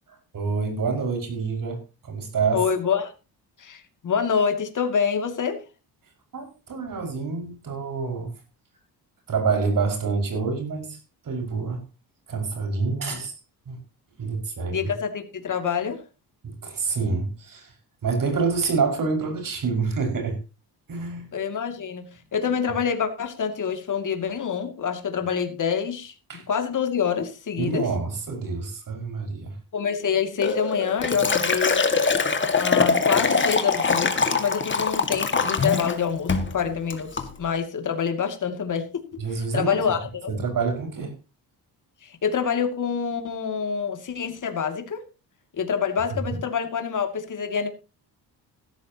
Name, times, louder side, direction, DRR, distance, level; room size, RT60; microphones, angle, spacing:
voice 1, 0.1-2.6 6.3-8.3 9.3-11.0 11.2-11.8 12.3-13.4 13.7-13.8 14.2-14.9 16.4-17.7 18.0-20.4 20.9-21.3 26.3-26.5 27.6-29.6 39.2-39.9 40.3-41.1 46.3-46.4, right 4 dB, 55° right, 4 dB, 5.7 m, -27 dB
voice 2, 2.5-3.1 3.6-5.6 14.7-16.0 21.3-27.9 29.7-32.1 32.5-39.2 39.5-40.3 42.0-45.0 45.5-47.7, left 7 dB, 50° left, 6 dB, 2.5 m, -26 dB
Liquid, 30.4-36.0 36.3-36.5 36.9-37.3, left 4 dB, 30° left, 2.0 m, -23 dB
15.5 x 13.0 x 2.9 m, 0.30 s
cardioid pair, 120°, 40 cm